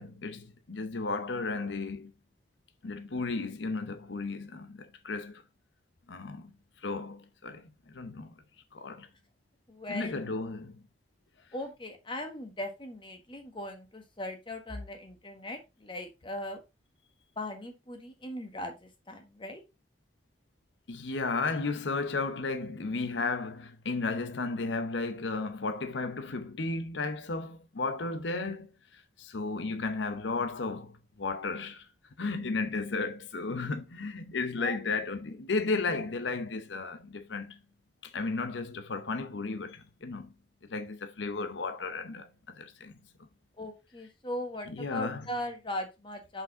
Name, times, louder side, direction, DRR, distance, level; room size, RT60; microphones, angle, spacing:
voice 1, 0.0-2.1 2.8-5.4 6.1-6.5 6.8-8.3 8.7-9.1 9.9-10.8 20.9-28.7 28.9-31.9 32.2-37.6 38.0-40.3 40.7-43.0 44.7-45.3, left 3 dB, 75° left, 0.8 m, -34 dB
voice 2, 9.7-10.2 11.5-16.6 17.4-19.6 34.6-34.8 43.6-46.4, left 1 dB, 25° left, 1.4 m, -39 dB
5.9 x 5.4 x 3.7 m
head